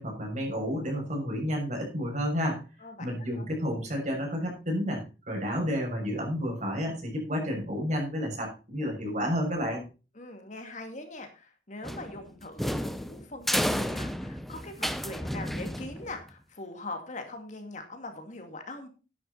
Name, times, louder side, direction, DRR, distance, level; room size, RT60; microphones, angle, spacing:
voice 1, 0.0-2.6 3.0-9.8, equal, 45° right, 1 dB, 6.7 m, -31 dB
voice 2, 10.1-18.9, left 2 dB, 45° left, 6 dB, 2.3 m, -42 dB
sound 1, 11.8-16.3, equal, ahead, 0.9 m, -32 dB
11.0 x 11.0 x 4.1 m, 0.32 s
head